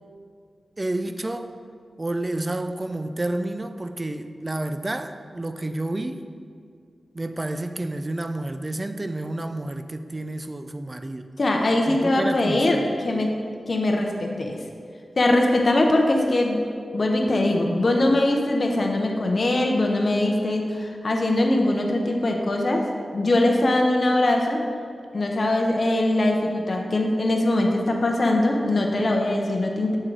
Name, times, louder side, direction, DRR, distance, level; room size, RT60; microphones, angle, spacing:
voice 1, 0.8-1.6 2.0-6.3 7.1-11.3 11.9-12.9, right 1 dB, 30° right, 9 dB, 0.4 m, -30 dB
voice 2, 11.4-12.8 13.0-13.3 13.7-14.6 15.2-16.6 16.9-22.8 23.1-24.6 25.1-30.0, left 1 dB, 55° left, 1 dB, 0.6 m, -21 dB
6.5 x 3.7 x 4.5 m, 2.2 s
cardioid pair, 50°, 0 cm